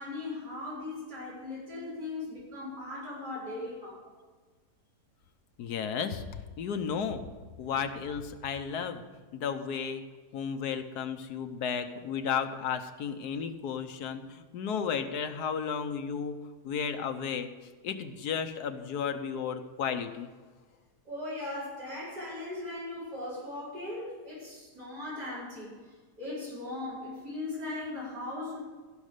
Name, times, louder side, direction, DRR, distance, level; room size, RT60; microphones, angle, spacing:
voice 1, 0.0-4.1 7.6-7.7 21.0-28.6, left 2 dB, 80° right, -9 dB, 5.4 m, -39 dB
voice 2, 5.6-6.2 6.6-7.3 7.6-9.0 9.3-10.0 10.3-16.4 16.6-17.5 17.8-20.3, left 7 dB, 75° left, 8 dB, 1.4 m, -33 dB
15.0 x 6.4 x 6.7 m, 1.4 s
omnidirectional pair, 1.7 m